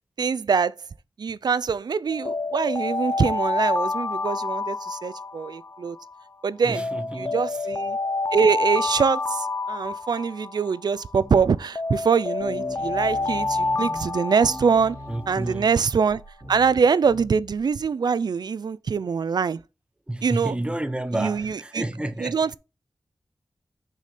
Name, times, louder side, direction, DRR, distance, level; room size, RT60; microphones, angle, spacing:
voice 1, 0.2-0.7 1.2-6.0 6.4-6.8 7.2-8.0 8.3-15.0 15.3-16.2 16.5-19.6 20.2-20.6 21.1-21.8 22.2-22.5, right 6 dB, 75° right, 0.4 m, -24 dB
Alarm, 2.1-6.2 6.8-11.2 11.8-15.6, left 3 dB, 40° left, 0.4 m, -28 dB
voice 2, 6.6-7.4 15.1-15.7 20.1-22.4, right 1 dB, 15° right, 0.9 m, -30 dB
sound 1, 11.1-11.7 12.1-12.2 12.4-17.7, equal, 30° right, 2.5 m, -41 dB
6.3 x 4.2 x 5.0 m
wide cardioid pair, 95°, 7 cm